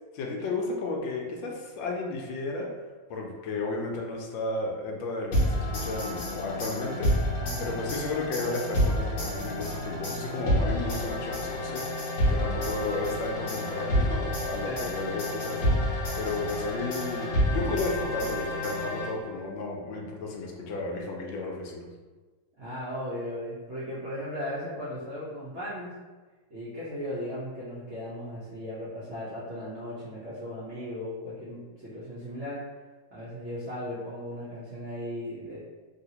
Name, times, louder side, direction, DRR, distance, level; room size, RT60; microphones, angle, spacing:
voice 1, 0.1-2.7 3.1-21.9, left 3 dB, 75° left, 0 dB, 1.2 m, -33 dB
sound 1, 5.3-19.4, equal, 55° left, 0.9 m, -29 dB
voice 2, 7.4-7.8 14.6-14.9 22.6-25.9 26.5-32.6 33.1-35.6, equal, 65° right, -11 dB, 0.6 m, -37 dB
3.1 x 2.8 x 2.8 m, 1.3 s
omnidirectional pair, 2.3 m